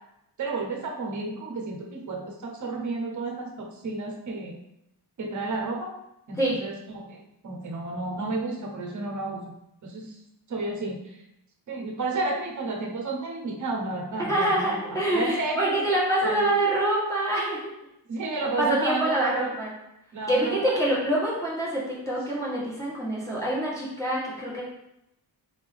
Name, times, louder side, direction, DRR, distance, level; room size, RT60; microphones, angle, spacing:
voice 1, 0.4-4.6 5.2-6.0 6.3-9.4 9.8-10.2 10.5-11.2 11.7-15.8 16.2-16.5 18.1-19.6 20.1-20.8, right 3 dB, 45° right, 1 dB, 0.8 m, -31 dB
voice 2, 14.3-17.7 18.6-19.7 20.3-24.6, right 1 dB, 10° left, -6 dB, 1.3 m, -26 dB
4.0 x 3.5 x 3.4 m, 0.82 s
wide cardioid pair, 180°, 42 cm